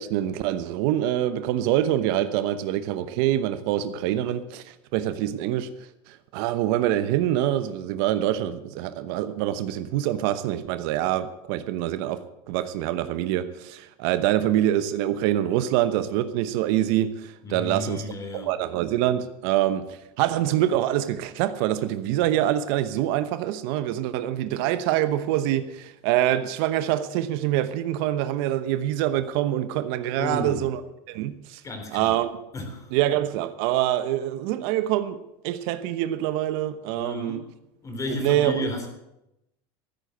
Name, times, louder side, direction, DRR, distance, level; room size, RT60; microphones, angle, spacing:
voice 1, 0.0-5.7 6.1-12.2 12.5-18.1 18.3-30.8 31.1-31.6 31.9-32.4 32.9-37.4 38.2-38.7, right 12 dB, 65° right, 1.0 m, -25 dB
voice 2, 17.4-18.6 30.2-30.7 31.6-32.2 32.5-33.0 37.0-37.5 37.8-38.9, left 2 dB, 25° left, 3.6 m, -33 dB
14.5 x 8.5 x 7.8 m
supercardioid pair, 120°, 13 cm